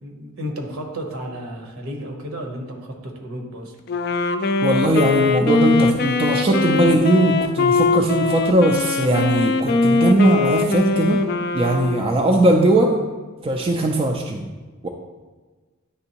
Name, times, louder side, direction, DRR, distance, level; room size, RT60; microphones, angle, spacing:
voice 1, 0.0-3.8 12.1-12.3, equal, 70° right, 2 dB, 1.0 m, -33 dB
Wind instrument woodwind instrument, 3.9-12.5, left 3 dB, 45° left, 0.4 m, -21 dB
voice 2, 4.6-11.2 11.5-13.0 13.4-14.5 14.8-14.9, right 1 dB, 25° right, 2 dB, 0.4 m, -19 dB
9.7 x 3.4 x 2.9 m, 1.4 s
head